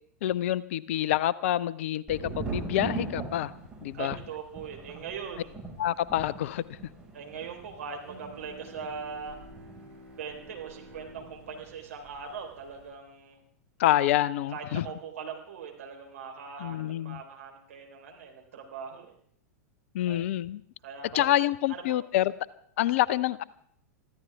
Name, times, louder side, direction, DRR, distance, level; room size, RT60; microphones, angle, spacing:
voice 1, 0.2-3.5 3.8-4.1 5.8-6.6 13.8-14.9 16.6-17.2 19.9-20.6 21.1-22.3 22.8-23.4, left 13 dB, 50° left, 20 dB, 0.6 m, -27 dB
Thunder, 2.1-11.7 12.0-12.7, right 4 dB, 10° right, 5.6 m, -41 dB
voice 2, 3.9-5.6 7.1-9.4 10.2-13.4 14.5-19.1 20.1-20.2 20.8-21.3 21.7-22.0, right 6 dB, 60° right, 1 dB, 3.9 m, -41 dB
Bowed string instrument, 8.0-13.5, right 1 dB, 45° right, 7.3 m, -52 dB
24.5 x 14.5 x 3.5 m, 0.64 s
figure-of-eight pair, 95°, 9 cm